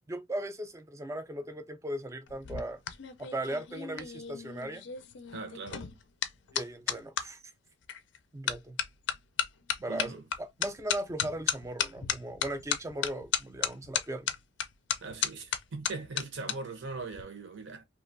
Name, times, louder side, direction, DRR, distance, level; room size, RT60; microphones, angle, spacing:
voice 1, 0.1-2.8 3.2-4.9 6.5-7.4 8.3-8.8 9.8-14.3, right 1 dB, 15° right, 0.3 m, -38 dB
sound 1, 2.3-7.3 7.9-8.2 8.5-16.5 16.8-17.2, left 9 dB, 65° left, 0.4 m, -34 dB
voice 2, 5.3-5.9 9.9-10.2 15.0-17.8, right 3 dB, 75° right, 0.8 m, -40 dB
2.9 x 2.3 x 2.5 m
head